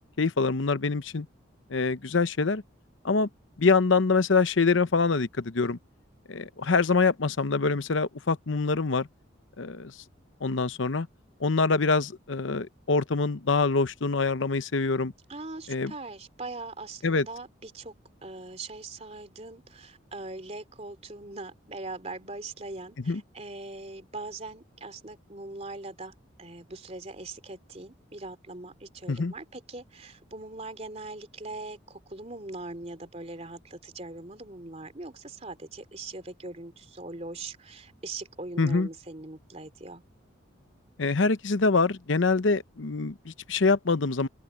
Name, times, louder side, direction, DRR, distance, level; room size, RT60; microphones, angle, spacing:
voice 1, 0.2-1.3 1.7-2.6 3.0-3.3 3.6-5.8 6.3-9.1 9.6-9.9 10.4-11.1 11.4-15.1 15.7-15.9 17.0-17.2 23.1-23.2 29.1-29.3 38.6-38.9 41.0-44.3, left 4 dB, 70° left, 0.8 m, -25 dB
voice 2, 15.3-40.0, right 2 dB, 30° right, 3.2 m, -41 dB
open air
head